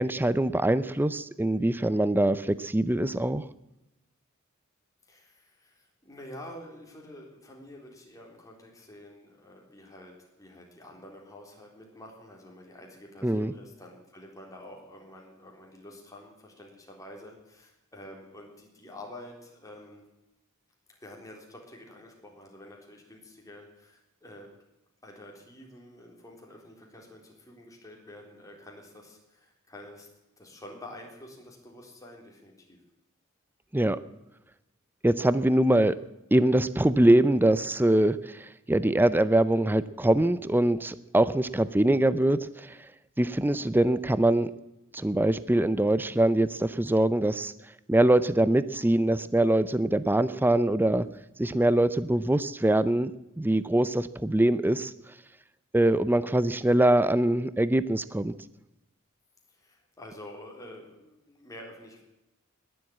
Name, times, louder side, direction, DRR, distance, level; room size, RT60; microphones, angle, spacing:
voice 1, 0.0-3.5 13.2-13.5 33.7-34.0 35.0-36.0 36.3-42.8 43.2-44.5 44.9-47.5 47.9-51.1 51.4-53.1 53.4-54.9 55.7-58.3, right 1 dB, 10° right, 15 dB, 0.5 m, -23 dB
voice 2, 5.1-20.0 21.0-24.5 25.0-30.1 30.4-32.8 59.5-62.0, left 1 dB, 15° left, 0 dB, 3.7 m, -48 dB
20.0 x 7.9 x 8.6 m, 0.94 s
head